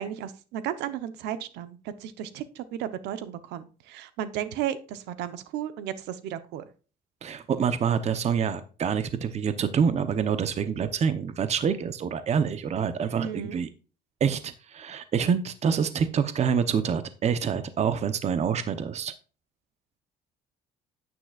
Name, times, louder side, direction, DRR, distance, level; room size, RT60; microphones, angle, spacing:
voice 1, 0.0-6.6 13.2-13.6, right 10 dB, 90° right, 12 dB, 0.9 m, -34 dB
voice 2, 7.2-13.7 14.2-19.1, right 7 dB, 40° right, 11 dB, 0.9 m, -26 dB
9.9 x 9.1 x 2.4 m, 0.35 s
cardioid pair, 110°, 17 cm